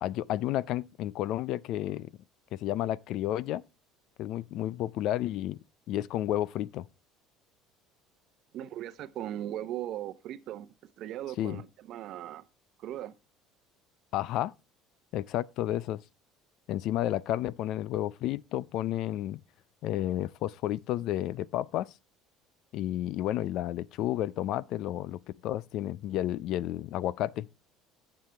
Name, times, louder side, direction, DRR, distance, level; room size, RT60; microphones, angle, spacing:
voice 1, 0.0-2.1 2.5-3.6 4.2-5.6 5.9-6.9 11.4-11.6 14.1-14.5 15.1-16.0 16.7-19.4 19.8-21.9 22.7-27.5, left 13 dB, 60° left, 0.4 m, -31 dB
voice 2, 8.5-12.5 12.8-13.1, right 12 dB, 55° right, 0.8 m, -38 dB
14.0 x 7.4 x 3.4 m
cardioid pair, 120°, 0 cm